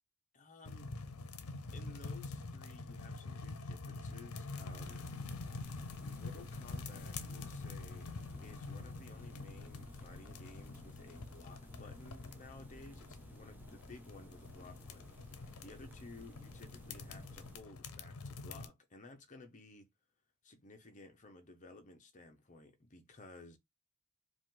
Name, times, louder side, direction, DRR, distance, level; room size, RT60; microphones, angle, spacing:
voice 1, 0.3-0.9 1.7-5.1 6.0-8.1 8.4-19.9 20.4-23.6, left 2 dB, 35° left, 0.9 m, -56 dB
sound 1, 0.6-18.7, left 3 dB, 85° left, 0.6 m, -46 dB
sound 2, 4.7-17.6, right 1 dB, 10° right, 0.7 m, -57 dB
4.9 x 2.5 x 3.8 m
head